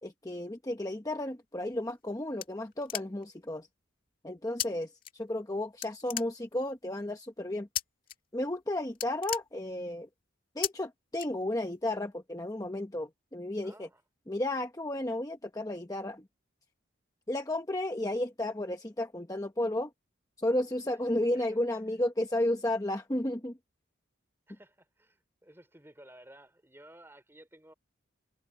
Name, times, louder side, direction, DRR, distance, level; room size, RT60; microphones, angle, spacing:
voice 1, 0.0-3.7 4.2-7.7 8.3-10.1 10.6-13.9 14.3-16.2 17.3-19.9 20.4-23.6, left 1 dB, 15° left, 0.9 m, -33 dB
sound 1, 1.7-3.4 4.6-4.7 5.0-5.5 5.8-6.8 7.8-8.2 8.5-8.6 8.9-10.1 10.6-10.7 11.2-11.8, left 11 dB, 45° left, 2.3 m, -36 dB
voice 2, 13.6-14.0 21.3-21.6 24.5-27.7, right 1 dB, 10° right, 3.3 m, -55 dB
head